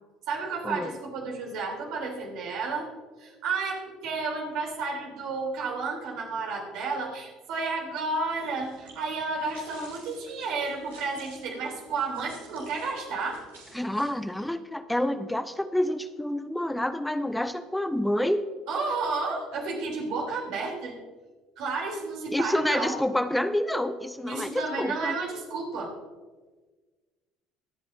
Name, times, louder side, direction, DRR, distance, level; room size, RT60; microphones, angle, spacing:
voice 1, 0.3-2.9 3.2-13.4 18.7-21.0 21.6-23.0 24.3-25.9, right 4 dB, 60° right, 0 dB, 3.4 m, -32 dB
sound 1, 8.3-14.5, right 3 dB, 85° right, 4.1 m, -52 dB
voice 2, 13.7-18.5 22.3-25.2, left 1 dB, 5° left, 11 dB, 0.7 m, -28 dB
24.0 x 8.8 x 2.7 m, 1.3 s
hypercardioid pair, 60°, 0 cm